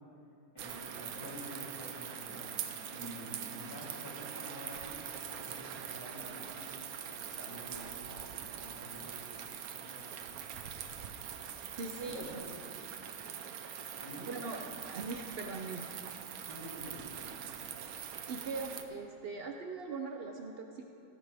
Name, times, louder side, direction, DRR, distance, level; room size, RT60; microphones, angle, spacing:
voice 1, 0.5-6.7 7.1-10.0 10.8-11.1 12.0-12.5 14.0-14.3 16.5-17.6, equal, 15° left, -8 dB, 3.1 m, -48 dB
sound 1, 0.6-18.8, right 8 dB, 65° right, 1.0 m, -43 dB
voice 2, 11.8-12.4 14.3-14.6 14.9-15.8 18.3-20.9, right 4 dB, 85° right, 3 dB, 0.5 m, -40 dB
17.0 x 9.5 x 3.5 m, 2.8 s
omnidirectional pair, 1.9 m